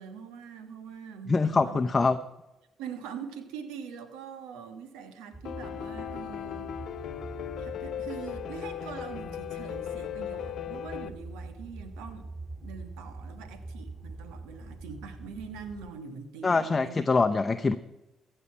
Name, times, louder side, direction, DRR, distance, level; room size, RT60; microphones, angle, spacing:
voice 1, 0.0-1.9 2.8-6.7 7.6-12.3 12.6-17.1, right 6 dB, 90° right, 8 dB, 1.4 m, -43 dB
voice 2, 1.3-2.2 16.4-17.8, left 4 dB, 30° left, 7 dB, 0.7 m, -24 dB
sound 1, 5.3-15.9, right 2 dB, 20° right, 4.0 m, -44 dB
Piano, 5.4-11.1, left 9 dB, 65° left, 0.8 m, -37 dB
15.0 x 5.5 x 8.5 m, 0.97 s
supercardioid pair, 70°, 0 cm